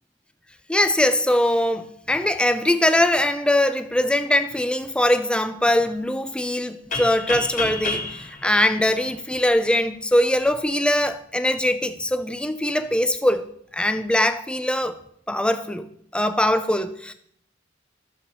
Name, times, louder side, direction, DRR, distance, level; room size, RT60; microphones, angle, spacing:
voice 1, 0.7-13.5 13.7-15.0 15.3-17.1, left 1 dB, 5° left, 0.6 m, -22 dB
sound 1, 6.9-9.7, left 3 dB, 40° left, 2.3 m, -30 dB
14.0 x 7.2 x 4.2 m
head